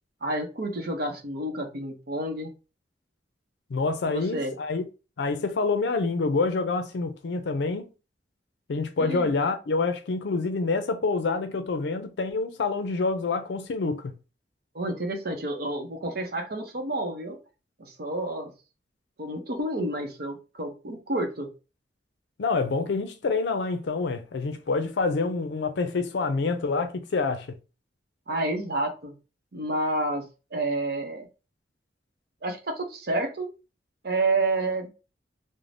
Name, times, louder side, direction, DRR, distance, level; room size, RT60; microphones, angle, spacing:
voice 1, 0.2-2.5 4.0-4.5 9.0-9.3 14.7-17.4 17.8-18.5 19.2-21.5 28.3-29.1 29.5-31.3 32.4-33.5 34.0-34.9, right 2 dB, 55° right, 0.7 m, -29 dB
voice 2, 3.7-4.9 5.2-7.9 8.7-14.1 22.4-27.5, left 3 dB, 70° left, 0.4 m, -27 dB
2.5 x 2.1 x 3.2 m
head